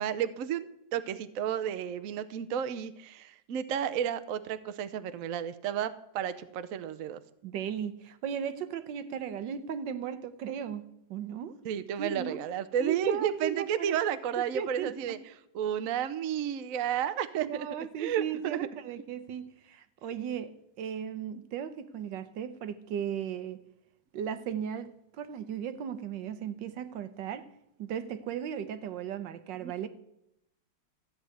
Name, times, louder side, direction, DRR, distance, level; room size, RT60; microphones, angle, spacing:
voice 1, 0.0-7.2 11.6-15.2 15.5-17.7 18.0-18.6 29.6-29.7, right 9 dB, 60° right, 11 dB, 0.9 m, -32 dB
voice 2, 7.4-11.5 12.0-12.4 12.8-14.0 14.4-15.1 17.4-23.6 24.1-27.5 27.8-29.9, right 8 dB, 80° right, 12 dB, 1.5 m, -36 dB
14.0 x 5.5 x 9.3 m, 0.81 s
omnidirectional pair, 2.0 m